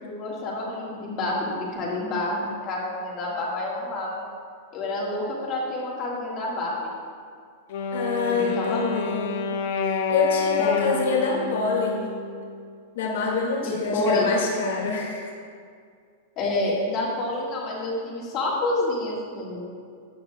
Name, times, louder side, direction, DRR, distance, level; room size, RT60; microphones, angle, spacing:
voice 1, 0.0-4.2 4.7-6.9 8.2-9.2 10.6-10.9 13.6-14.3 16.4-19.7, left 2 dB, 30° left, -4 dB, 1.8 m, -28 dB
Wind instrument woodwind instrument, 7.7-12.7, left 5 dB, 55° left, 0.7 m, -29 dB
voice 2, 7.9-9.5 9.9-12.0 12.9-15.3, left 4 dB, 75° left, -2 dB, 2.2 m, -26 dB
13.5 x 8.8 x 2.4 m, 2.2 s
supercardioid pair, 160°, 0 cm